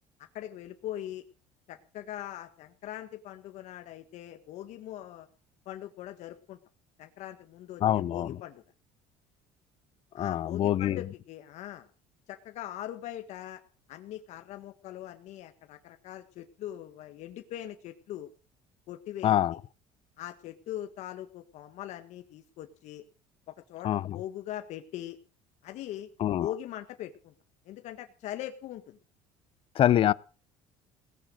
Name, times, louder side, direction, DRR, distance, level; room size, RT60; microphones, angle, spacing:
voice 1, 0.3-1.2 1.7-5.3 5.7-6.6 7.0-8.6 10.2-11.9 12.3-13.6 13.9-18.3 18.9-19.3 20.2-23.0 23.5-25.2 25.6-26.1 26.4-27.3 27.7-29.0, left 12 dB, 65° left, 1.6 m, -41 dB
voice 2, 7.8-8.4 10.1-11.1 19.2-19.6 23.8-24.2 26.2-26.5 29.7-30.1, left 11 dB, 45° left, 0.7 m, -25 dB
18.0 x 10.0 x 6.3 m
cardioid pair, 125°, 13 cm